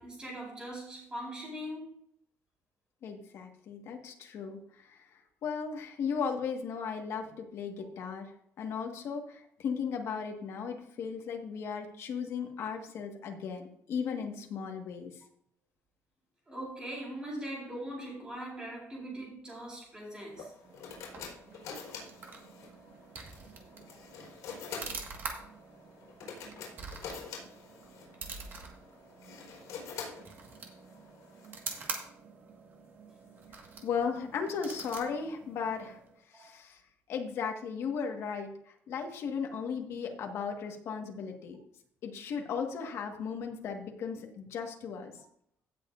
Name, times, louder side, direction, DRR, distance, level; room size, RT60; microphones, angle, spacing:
voice 1, 0.0-1.9 16.5-20.5 23.7-24.0 36.3-36.6, right 1 dB, 15° right, -4 dB, 4.5 m, -41 dB
voice 2, 3.0-15.2 33.8-36.0 36.3-36.8 37.1-41.6 42.0-45.2, left 6 dB, 50° left, 2 dB, 1.7 m, -36 dB
sound 1, 20.3-31.5, left 5 dB, 80° left, 4.4 m, -46 dB
sound 2, 20.6-36.2, right 4 dB, 40° right, 1.8 m, -46 dB
16.5 x 6.9 x 2.6 m, 0.67 s
cardioid pair, 175°, 6 cm